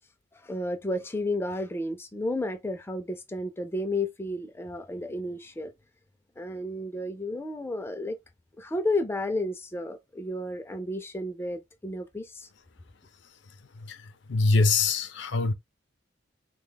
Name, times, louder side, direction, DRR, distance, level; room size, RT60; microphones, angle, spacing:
voice 1, 0.4-5.7 6.4-8.2 8.6-12.5, left 1 dB, 15° left, 0.4 m, -32 dB
voice 2, 14.3-15.5, left 3 dB, 70° left, 0.5 m, -23 dB
3.2 x 2.2 x 3.8 m
head